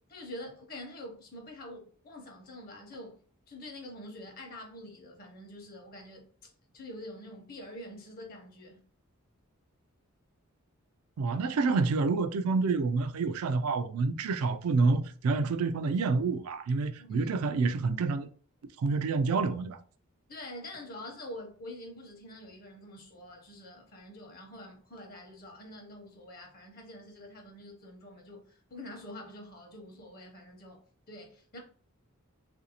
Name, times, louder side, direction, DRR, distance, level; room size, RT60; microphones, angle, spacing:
voice 1, 0.0-3.1 3.5-8.8 17.0-17.3 20.3-31.6, left 1 dB, 40° left, 0.8 m, -46 dB
voice 2, 11.2-18.3 18.8-19.8, right 4 dB, 80° right, 0.3 m, -28 dB
3.1 x 2.6 x 2.8 m
head